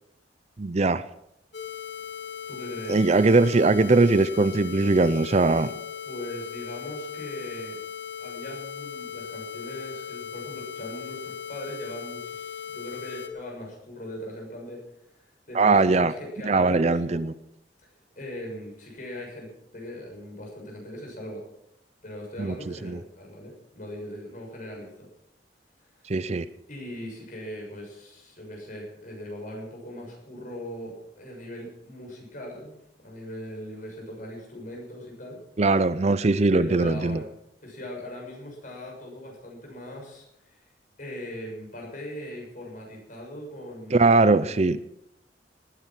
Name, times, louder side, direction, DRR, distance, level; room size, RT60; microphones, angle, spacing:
voice 1, 0.6-1.0 2.9-5.7 15.5-16.1 16.4-17.3 22.4-22.6 22.8-23.0 26.1-26.4 35.6-37.2 43.9-44.8, right 3 dB, 40° right, 15 dB, 0.5 m, -20 dB
sound 1, 1.5-13.3, left 8 dB, 85° left, 2.4 m, -38 dB
voice 2, 2.5-3.0 6.1-7.8 8.2-14.8 15.2-17.2 18.1-21.4 22.0-25.1 26.7-35.4 36.5-37.3 37.6-40.6 41.0-44.5, equal, 50° left, 0 dB, 6.7 m, -40 dB
18.5 x 10.0 x 6.1 m, 0.79 s
head